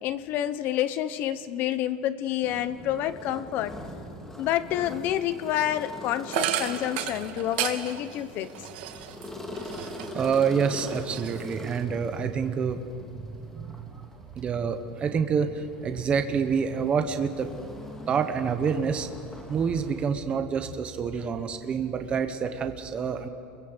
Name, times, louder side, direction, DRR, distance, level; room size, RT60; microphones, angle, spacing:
voice 1, 0.0-3.7 4.4-8.5, left 12 dB, 40° left, 13 dB, 1.1 m, -28 dB
sound 1, 2.4-20.1, left 1 dB, 10° left, 2.2 m, -43 dB
sound 2, 6.3-10.3 10.7-11.8, right 11 dB, 70° right, 2.1 m, -33 dB
voice 2, 9.8-12.8 13.2-14.1 14.3-17.5 18.1-19.1 19.5-23.3, right 6 dB, 20° right, 7 dB, 1.2 m, -27 dB
30.0 x 22.5 x 8.2 m, 2.7 s
supercardioid pair, 175°, 5 cm